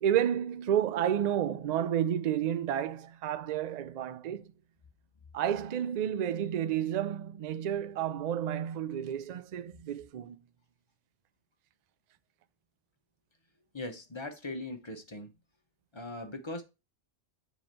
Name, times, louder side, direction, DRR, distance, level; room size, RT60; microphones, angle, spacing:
voice 1, 0.0-4.5 5.3-10.4, right 10 dB, 60° right, 0.4 m, -31 dB
voice 2, 13.7-15.3 15.9-16.6, left 2 dB, 30° left, 0.7 m, -39 dB
7.6 x 3.0 x 4.4 m
omnidirectional pair, 1.2 m